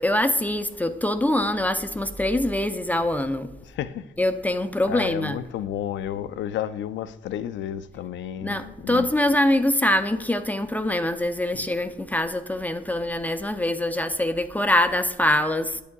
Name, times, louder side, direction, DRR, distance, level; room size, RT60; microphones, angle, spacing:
voice 1, 0.0-3.5 4.2-5.4 8.4-15.8, left 1 dB, 10° left, 0.5 m, -24 dB
voice 2, 3.6-4.1 4.9-9.1 11.5-11.6, left 10 dB, 70° left, 0.5 m, -32 dB
8.4 x 8.2 x 2.3 m
cardioid pair, 90°, 20 cm